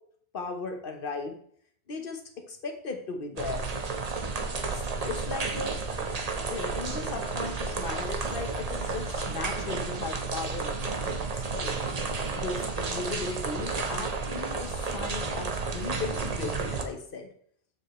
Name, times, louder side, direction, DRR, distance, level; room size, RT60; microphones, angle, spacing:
voice 1, 0.3-1.4 1.9-2.2 2.5-3.6 4.6-5.8 6.5-11.7 12.3-17.3, left 4 dB, 60° left, 5 dB, 1.1 m, -37 dB
sound 1, 3.4-16.8, right 4 dB, 40° right, 0.8 m, -32 dB
sound 2, 5.3-11.6, left 4 dB, 80° left, 1.5 m, -50 dB
7.0 x 6.7 x 3.0 m, 0.62 s
omnidirectional pair, 1.1 m